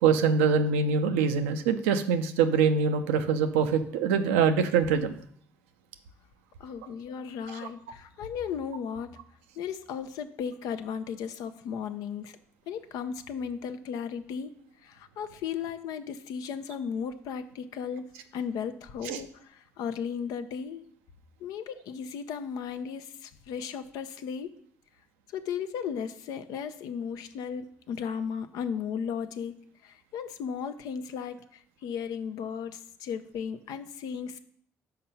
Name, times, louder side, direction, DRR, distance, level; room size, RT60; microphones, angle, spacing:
voice 1, 0.0-5.2 19.1-19.2, right 6 dB, 85° right, 8 dB, 0.5 m, -24 dB
voice 2, 6.6-9.2 9.6-12.4 12.7-14.5 14.8-20.8 21.4-24.5 25.3-29.6 29.8-34.4, left 7 dB, 75° left, 10 dB, 0.5 m, -35 dB
5.7 x 4.6 x 5.5 m, 0.63 s
hypercardioid pair, 55°, 7 cm